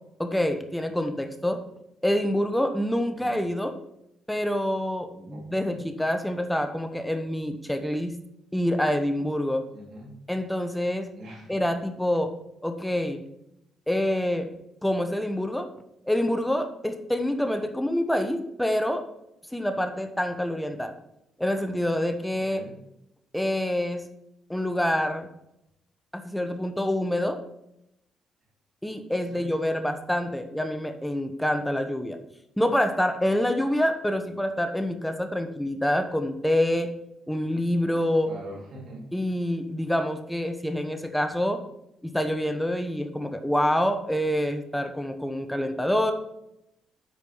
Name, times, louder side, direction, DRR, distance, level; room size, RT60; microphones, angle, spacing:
voice 1, 0.2-1.6 2.0-3.7 4.3-8.1 8.5-9.6 10.3-11.1 11.5-12.3 12.6-13.2 13.9-14.5 14.8-15.7 16.1-19.0 19.5-20.9 21.4-22.6 23.3-24.0 24.5-25.3 26.1-27.4 28.8-32.2 32.6-36.9 37.3-38.3 39.1-41.6 42.0-46.1, left 1 dB, 5° left, 7 dB, 1.0 m, -26 dB
voice 2, 5.3-5.8 9.7-10.1 11.2-11.6 22.3-22.8 29.3-29.5 38.2-39.1, equal, 60° right, -1 dB, 3.1 m, -43 dB
8.4 x 4.8 x 5.5 m, 0.83 s
cardioid pair, 100°, 0 cm